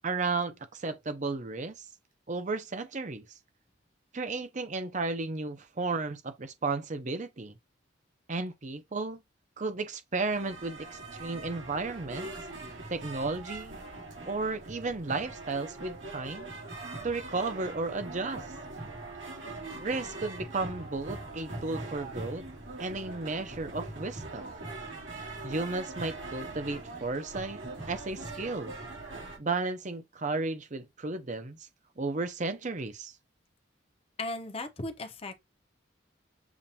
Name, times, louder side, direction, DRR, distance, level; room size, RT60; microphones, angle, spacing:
voice 1, 0.0-1.8 2.3-3.2 4.1-7.6 8.3-9.2 9.6-12.3 12.9-13.8 14.3-16.5 17.0-18.4 19.8-22.4 22.8-24.5 25.4-27.6 27.9-28.8 29.4-31.6 32.0-33.1, right 3 dB, 40° right, 0.7 m, -33 dB
sound 1, 10.3-29.4, right 2 dB, 90° right, 2.5 m, -42 dB
voice 2, 34.2-35.4, left 2 dB, 30° left, 0.8 m, -36 dB
7.1 x 2.5 x 2.8 m
head